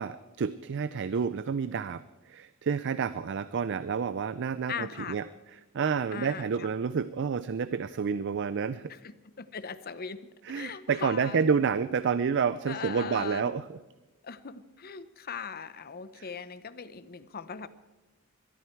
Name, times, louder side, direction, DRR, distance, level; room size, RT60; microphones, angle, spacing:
voice 1, 0.0-5.3 5.7-8.9 10.4-13.8 16.2-16.3, right 6 dB, 60° right, 15 dB, 0.4 m, -29 dB
voice 2, 4.7-5.2 6.1-6.7 9.4-10.2 10.5-11.5 12.7-13.5 14.2-17.7, left 6 dB, 45° left, 13 dB, 0.8 m, -39 dB
22.0 x 13.0 x 4.6 m, 1.1 s
head